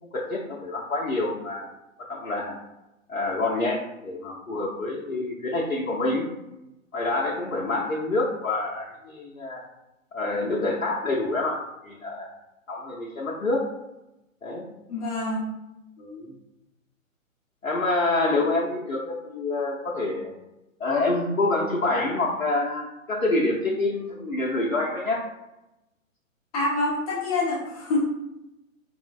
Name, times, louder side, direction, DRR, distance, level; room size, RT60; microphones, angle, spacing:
voice 1, 0.0-1.7 2.1-2.6 3.1-6.3 6.9-9.6 10.1-12.4 12.7-13.7 14.4-14.7 16.0-16.4 17.6-20.3 20.8-25.3, left 2 dB, 80° left, -3 dB, 0.7 m, -27 dB
voice 2, 14.9-15.5 26.5-28.2, left 2 dB, 30° left, -4 dB, 0.7 m, -26 dB
4.3 x 2.0 x 2.4 m, 0.92 s
figure-of-eight pair, 125°, 41 cm